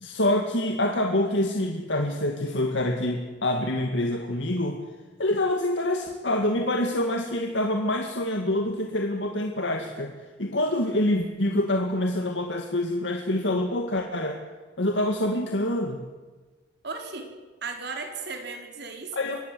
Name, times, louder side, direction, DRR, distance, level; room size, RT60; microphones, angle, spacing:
voice 1, 0.0-4.8 5.2-10.1 10.4-14.4 14.8-16.0 19.1-19.4, left 1 dB, 75° left, 3 dB, 2.1 m, -26 dB
voice 2, 16.8-17.3 17.6-19.2, right 4 dB, 65° right, 3 dB, 4.6 m, -35 dB
24.5 x 19.0 x 7.8 m, 1.3 s
head